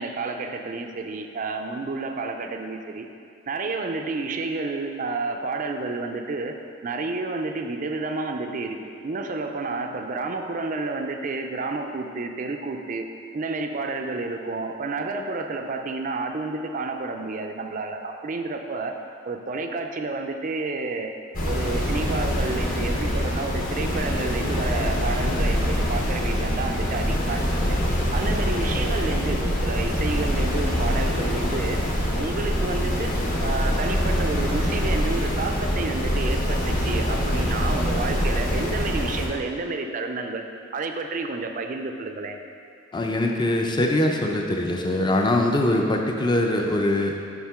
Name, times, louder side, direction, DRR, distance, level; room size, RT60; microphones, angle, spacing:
voice 1, 0.0-3.1 3.5-6.6 6.8-13.1 13.3-18.9 19.3-21.1 21.5-27.4 28.1-31.8 32.1-33.1 33.4-40.4 40.7-42.4, right 3 dB, 40° right, 5 dB, 0.4 m, -30 dB
sound 1, 21.3-39.3, equal, 45° left, 0.9 m, -24 dB
voice 2, 42.9-47.1, left 1 dB, 20° left, 2 dB, 0.5 m, -22 dB
7.2 x 5.6 x 3.6 m, 2.4 s
head